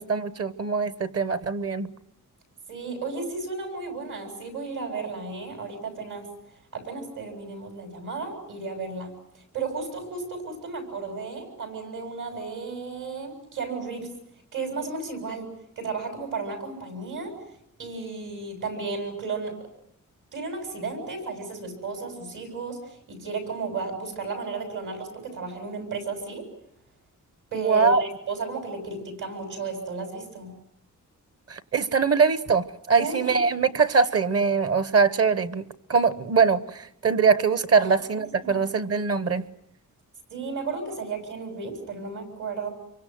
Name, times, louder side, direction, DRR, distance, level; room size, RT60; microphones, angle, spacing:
voice 1, 0.0-1.9 27.5-28.0 31.5-39.4, right 5 dB, 50° right, 14 dB, 1.1 m, -22 dB
voice 2, 2.7-6.3 6.7-9.1 9.5-14.1 14.5-15.5 15.8-17.3 17.8-19.5 20.3-26.4 27.5-30.5 33.0-33.4 37.8-37.9 38.4-38.7 40.3-42.7, right 4 dB, 75° right, 5 dB, 7.7 m, -33 dB
26.5 x 24.0 x 7.8 m, 0.76 s
wide cardioid pair, 170°, 32 cm